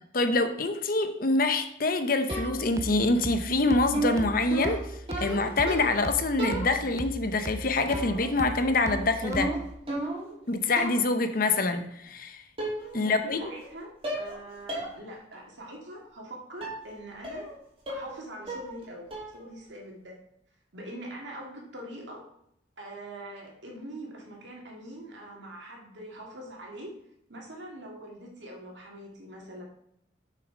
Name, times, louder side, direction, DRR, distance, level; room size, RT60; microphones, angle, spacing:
voice 1, 0.1-4.8 5.2-9.5 10.5-12.4 12.9-13.4, left 2 dB, 45° left, 8 dB, 0.8 m, -25 dB
sound 1, 2.3-9.8, right 1 dB, 15° right, 0.4 m, -38 dB
sound 2, 2.3-2.8 3.9-6.1 6.4-7.0 7.9-8.3 8.6-10.4 10.8-11.1 12.1-12.2 12.6-13.0 13.3-13.7 14.0-14.4 14.7-14.9 15.3-15.4 16.6-16.8 17.2-17.5 17.9-18.2 18.5-18.8 19.1-19.4, right 1 dB, 30° right, 2.9 m, -34 dB
voice 2, 12.9-17.5 17.9-19.1 19.3-20.2 20.7-22.3 22.8-26.9 27.3-29.6, right 1 dB, 70° right, -1 dB, 2.2 m, -43 dB
6.7 x 6.4 x 5.0 m, 0.75 s
head